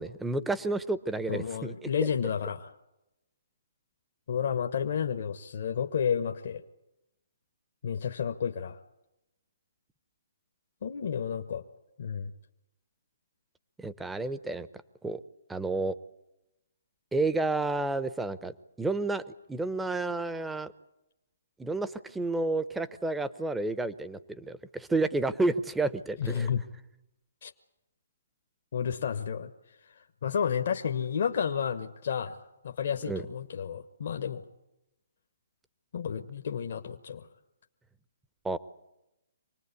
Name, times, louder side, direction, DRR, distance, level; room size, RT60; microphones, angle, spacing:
voice 1, 0.0-2.1 13.8-14.7 15.0-15.2 15.5-16.0 17.1-19.2 19.5-20.7 21.6-26.5 33.1-33.2 38.4-38.6, right 2 dB, 5° right, 13 dB, 0.8 m, -30 dB
voice 2, 1.3-2.7 4.3-6.6 7.8-8.8 10.8-11.6 12.0-12.3 26.2-26.6 27.4-27.5 28.7-29.5 30.2-34.4 35.9-37.3, left 7 dB, 60° left, 5 dB, 1.1 m, -31 dB
25.5 x 19.5 x 8.4 m, 0.93 s
hypercardioid pair, 135°, 0 cm